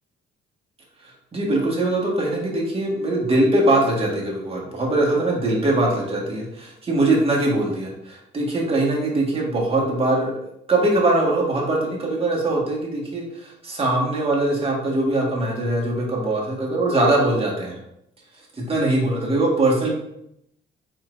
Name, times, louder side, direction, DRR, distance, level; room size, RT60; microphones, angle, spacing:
voice 1, 1.3-10.3 10.7-17.8 18.7-19.9, right 2 dB, 30° right, -3 dB, 1.7 m, -22 dB
4.5 x 4.3 x 2.6 m, 0.79 s
cardioid pair, 90°, 20 cm